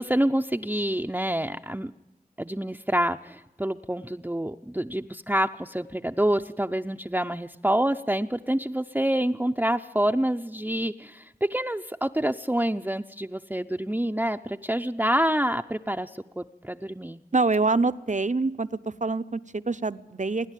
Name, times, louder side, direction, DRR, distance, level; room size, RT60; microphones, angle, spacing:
voice 1, 0.0-1.9 2.4-17.2, right 1 dB, 10° right, 5 dB, 0.6 m, -27 dB
voice 2, 17.3-18.7 19.0-20.5, right 3 dB, 50° right, 13 dB, 0.8 m, -25 dB
27.0 x 11.0 x 9.2 m, 0.97 s
wide cardioid pair, 40°, 15 cm